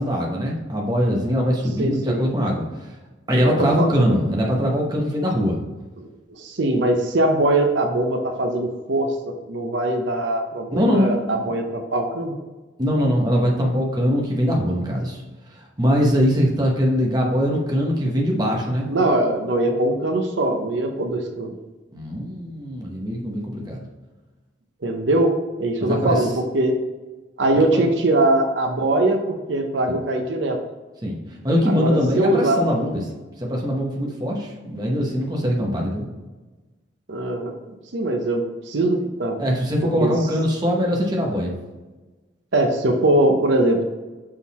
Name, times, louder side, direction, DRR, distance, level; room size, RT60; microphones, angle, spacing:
voice 1, 0.0-2.6 3.3-5.6 10.7-11.1 12.8-15.2 15.8-18.9 21.9-23.8 25.8-26.2 27.7-27.9 29.9-30.0 31.0-31.2 31.4-33.0 33.4-36.1 39.4-41.5, equal, 20° right, -1 dB, 1.0 m, -22 dB
voice 2, 1.8-2.3 3.4-3.9 6.0-9.1 9.5-12.4 18.9-21.6 24.8-25.3 25.6-26.8 27.4-30.6 31.7-32.6 37.1-39.4 40.0-40.1 42.5-43.8, right 1 dB, 70° right, 3 dB, 0.7 m, -21 dB
6.3 x 3.9 x 4.1 m, 1.2 s
head